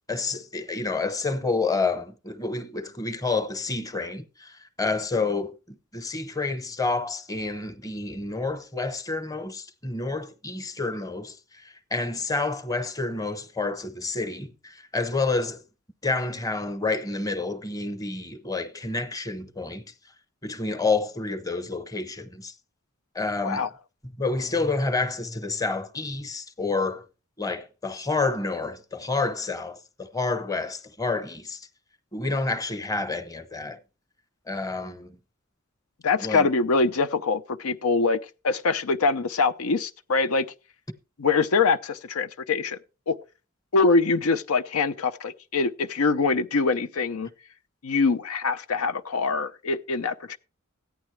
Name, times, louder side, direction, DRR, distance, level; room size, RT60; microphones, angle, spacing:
voice 1, 0.1-15.6 16.0-19.8 20.4-22.5 23.1-23.7 24.2-27.0 27.4-31.7 32.1-33.8 34.5-35.2 36.2-36.5, left 3 dB, 15° left, 0.9 m, -29 dB
voice 2, 36.0-40.5 41.2-42.8 43.1-43.2 43.7-47.3 47.8-50.4, left 4 dB, 90° left, 0.6 m, -24 dB
14.5 x 9.8 x 3.2 m
head